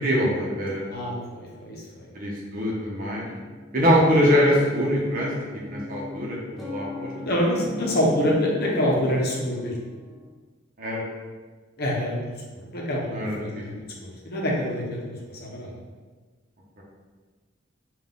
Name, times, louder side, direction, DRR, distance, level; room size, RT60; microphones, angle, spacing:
voice 1, 0.0-0.9 2.1-3.3 3.7-7.1 10.8-11.0 13.1-13.6 16.8-16.9, equal, 45° right, -3 dB, 0.8 m, -23 dB
voice 2, 0.9-2.1 7.2-9.7 11.8-15.7, equal, 55° left, -2 dB, 0.8 m, -26 dB
sound 1, 3.1-10.3, left 2 dB, ahead, 0.7 m, -39 dB
3.8 x 2.4 x 3.8 m, 1.4 s
head